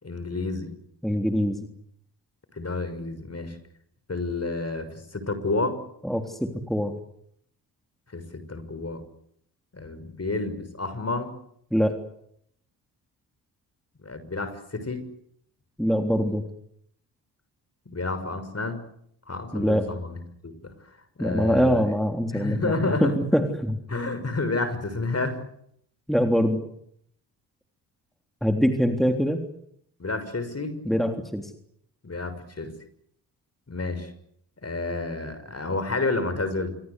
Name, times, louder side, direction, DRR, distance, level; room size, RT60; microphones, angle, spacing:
voice 1, 0.0-0.7 2.5-3.6 4.1-5.8 8.1-9.0 9.7-11.3 14.0-15.1 17.9-18.8 19.3-20.2 20.4-20.7 21.2-21.8 22.3-23.1 23.9-25.4 30.0-30.8 32.0-32.7 33.7-34.1 34.6-36.7, left 3 dB, 30° left, 11 dB, 6.2 m, -30 dB
voice 2, 1.0-1.7 6.0-6.9 11.7-12.0 15.8-16.4 19.5-19.9 21.2-22.7 23.0-23.8 26.1-26.6 28.4-29.4 30.9-31.5, equal, ahead, 5 dB, 3.5 m, -23 dB
26.5 x 24.0 x 8.3 m, 0.71 s
hypercardioid pair, 40°, 49 cm